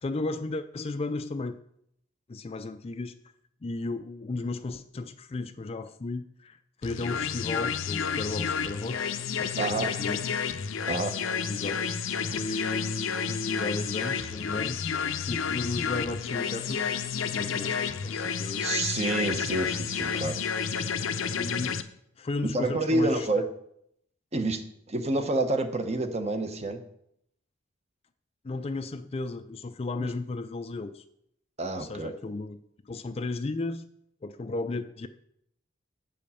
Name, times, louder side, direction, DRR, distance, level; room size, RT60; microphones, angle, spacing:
voice 1, 0.0-1.6 2.3-3.2 3.6-9.0 9.4-10.4 11.5-11.9 12.3-14.8 15.3-16.9 17.3-18.7 21.3-21.8 22.2-23.5 28.4-31.0 31.7-32.6 32.9-33.8 34.2-35.1, left 3 dB, 30° left, 10 dB, 0.4 m, -34 dB
sound 1, 6.8-21.8, left 6 dB, 85° left, 0.6 m, -31 dB
voice 2, 9.6-9.9 10.9-11.1 18.6-20.4 20.6-20.7 22.5-23.5 24.3-24.6 24.9-26.8 30.0-30.1 31.6-32.1, right 2 dB, 35° right, 7 dB, 0.9 m, -28 dB
8.4 x 5.3 x 6.9 m, 0.73 s
head